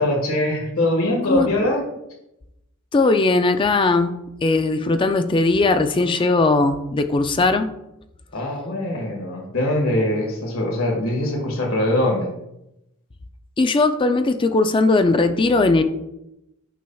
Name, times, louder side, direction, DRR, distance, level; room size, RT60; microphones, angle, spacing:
voice 1, 0.0-1.8 8.3-12.3, left 1 dB, 80° left, 0 dB, 1.7 m, -22 dB
voice 2, 2.9-4.1 4.4-7.7 13.6-15.8, left 3 dB, 25° left, 8 dB, 0.4 m, -18 dB
9.3 x 5.6 x 2.3 m, 0.87 s
head